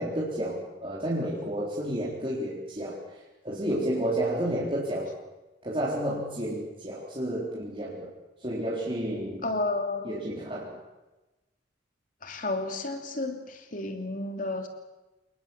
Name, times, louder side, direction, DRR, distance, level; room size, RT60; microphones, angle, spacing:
voice 1, 0.0-3.0 3.4-5.1 5.6-8.1 8.4-9.4 10.0-10.8, right 1 dB, 30° right, -6 dB, 4.0 m, -31 dB
voice 2, 9.4-10.1 12.2-14.7, left 2 dB, 45° left, 5 dB, 3.1 m, -31 dB
28.0 x 20.5 x 7.3 m, 1.1 s
head